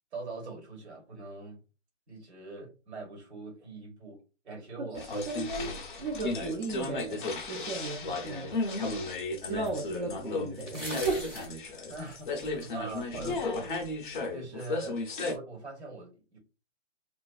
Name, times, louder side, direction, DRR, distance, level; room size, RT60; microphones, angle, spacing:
voice 1, 0.1-1.6 2.1-5.3 10.0-10.2 11.9-13.8 14.3-16.4, right 3 dB, 65° right, 1.2 m, -43 dB
voice 2, 4.8-8.6 9.4-11.2, right 3 dB, 45° right, 0.6 m, -36 dB
sound 1, 4.9-15.3, left 2 dB, 45° left, 0.5 m, -34 dB
sound 2, 8.5-8.6 9.7-9.8 10.6-11.5 12.1-12.7, equal, 5° right, 0.6 m, -40 dB
2.4 x 2.3 x 2.2 m
hypercardioid pair, 150°, 36 cm